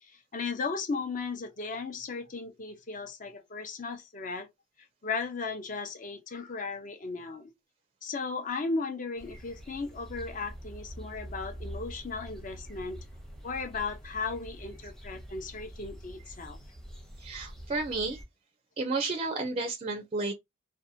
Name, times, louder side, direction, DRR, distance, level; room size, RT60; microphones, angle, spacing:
voice 1, 0.1-4.5 5.0-7.5 8.0-13.0 13.4-16.6, left 4 dB, 40° left, 0.6 m, -36 dB
sound 1, 9.2-18.3, equal, 5° left, 0.7 m, -45 dB
voice 2, 17.2-18.2 18.8-20.3, right 3 dB, 30° right, 0.4 m, -32 dB
2.7 x 2.1 x 2.6 m
head